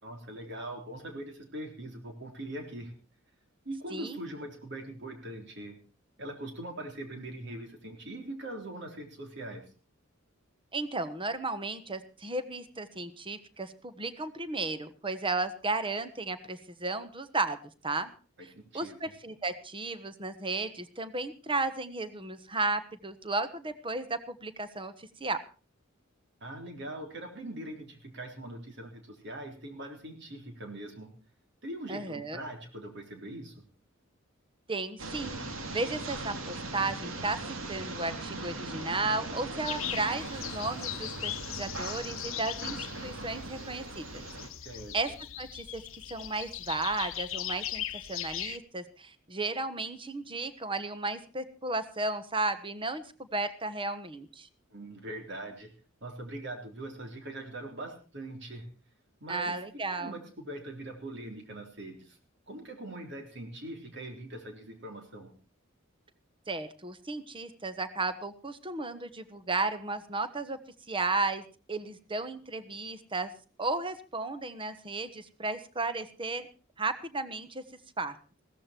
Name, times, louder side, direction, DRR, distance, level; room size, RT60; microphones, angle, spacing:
voice 1, 0.0-2.9 3.7-5.8 6.2-9.6 18.4-19.0 26.4-31.1 31.6-33.6 44.7-44.9 54.7-55.7 56.0-58.7 59.2-59.6 59.9-62.2 62.5-65.3, right 1 dB, 60° right, 4 dB, 3.7 m, -42 dB
voice 2, 10.7-17.6 17.8-18.1 18.7-25.4 31.9-32.4 34.7-35.4 35.7-44.2 44.9-45.8 46.1-54.5 59.3-60.1 66.5-70.6 70.9-73.3 73.6-76.5 76.8-77.6 78.0-78.2, right 3 dB, 25° right, 11 dB, 1.2 m, -34 dB
sound 1, 35.0-44.5, right 2 dB, 90° right, 2.4 m, -39 dB
sound 2, 39.6-48.6, left 13 dB, 80° left, 0.8 m, -39 dB
16.5 x 14.0 x 4.4 m, 0.36 s
head